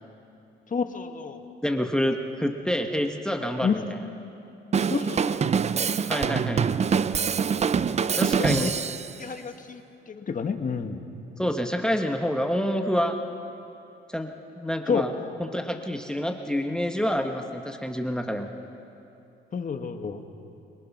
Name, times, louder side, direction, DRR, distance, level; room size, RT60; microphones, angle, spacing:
voice 1, 0.7-1.4 3.6-3.8 4.9-5.6 8.4-8.7 9.2-9.8 10.1-11.1 14.9-15.0 19.5-20.2, left 6 dB, 40° left, 6 dB, 1.5 m, -29 dB
voice 2, 1.6-4.0 6.1-6.6 8.1-8.8 11.4-13.2 14.1-15.1 15.4-18.5, equal, 5° left, 4 dB, 1.2 m, -27 dB
Drum kit / Drum, 4.7-9.1, right 6 dB, 35° right, 0.5 m, -25 dB
23.5 x 20.0 x 6.0 m, 2.7 s
cardioid pair, 90°, 20 cm